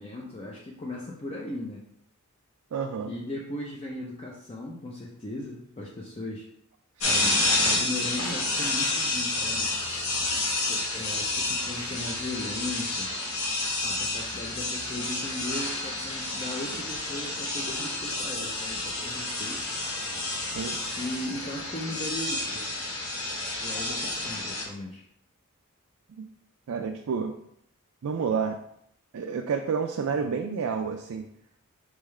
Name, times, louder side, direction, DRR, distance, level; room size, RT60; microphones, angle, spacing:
voice 1, 0.0-1.8 3.1-6.5 7.0-9.7 10.7-13.1 13.8-19.7 21.0-22.7 23.6-25.0, left 1 dB, 25° left, -3 dB, 0.5 m, -37 dB
voice 2, 2.7-3.1 7.0-7.1 20.6-20.8 26.2-26.3 26.7-27.3 28.0-28.6 29.1-31.3, right 6 dB, 70° right, 4 dB, 0.4 m, -29 dB
sound 1, 7.0-24.7, left 2 dB, 75° left, 1.2 m, -29 dB
4.5 x 3.6 x 3.2 m, 0.73 s
head